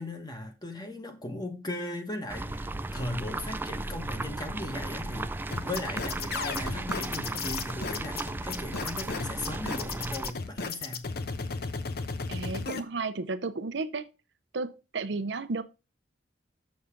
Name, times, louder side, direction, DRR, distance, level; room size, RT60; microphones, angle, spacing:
voice 1, 0.0-5.3 5.6-11.1, left 1 dB, 20° left, 1.3 m, -38 dB
sound 1, 2.3-10.3, right 2 dB, 10° right, 0.3 m, -35 dB
sound 2, 5.5-12.8, left 4 dB, 60° left, 0.8 m, -34 dB
voice 2, 12.3-14.1 14.5-15.6, right 3 dB, 75° right, 0.6 m, -33 dB
7.0 x 6.6 x 3.7 m
head